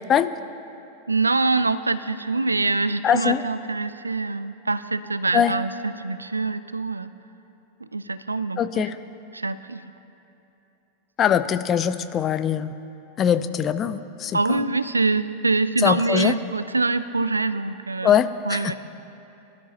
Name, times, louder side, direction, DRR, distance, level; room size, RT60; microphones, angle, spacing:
voice 1, 1.1-7.1 7.9-8.9 9.3-9.8 14.3-18.2 18.4-18.8, right 3 dB, 80° right, 14 dB, 0.4 m, -24 dB
voice 2, 3.0-3.4 5.3-5.5 8.6-9.0 11.2-12.7 13.2-14.7 15.8-16.4 18.0-18.8, left 8 dB, 30° left, 12 dB, 0.5 m, -22 dB
22.5 x 12.5 x 2.8 m, 2.9 s
figure-of-eight pair, 90°, 0 cm